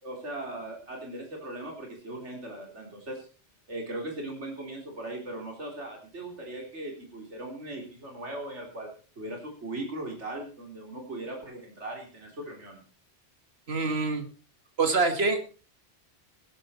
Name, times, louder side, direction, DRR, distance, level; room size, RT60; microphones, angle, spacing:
voice 1, 0.0-3.3 3.7-8.9 9.2-12.8, right 1 dB, 80° right, 0 dB, 4.1 m, -39 dB
voice 2, 13.7-14.3 14.8-15.4, right 3 dB, 60° right, 8 dB, 2.2 m, -25 dB
15.5 x 13.0 x 4.4 m, 0.37 s
omnidirectional pair, 1.2 m